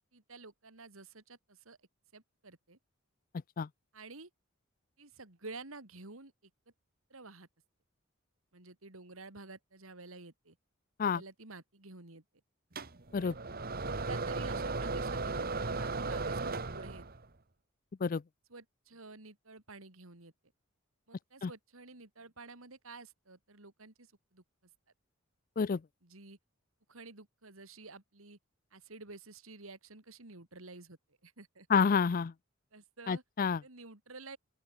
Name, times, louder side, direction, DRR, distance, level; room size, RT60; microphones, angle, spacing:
voice 1, 0.1-1.8 2.1-2.8 3.9-4.3 5.0-6.3 7.1-7.5 8.5-10.6 11.0-12.2 13.1-13.4 13.8-17.0 18.5-20.3 21.1-24.4 26.0-26.4 26.9-28.4 28.7-31.7 32.7-33.2 33.6-34.4, right 3 dB, 85° right, 2.9 m, -50 dB
sound 1, 12.8-17.2, right 3 dB, 45° right, 1.5 m, -36 dB
voice 2, 31.7-32.3 33.1-33.6, left 6 dB, 40° left, 0.4 m, -28 dB
open air
head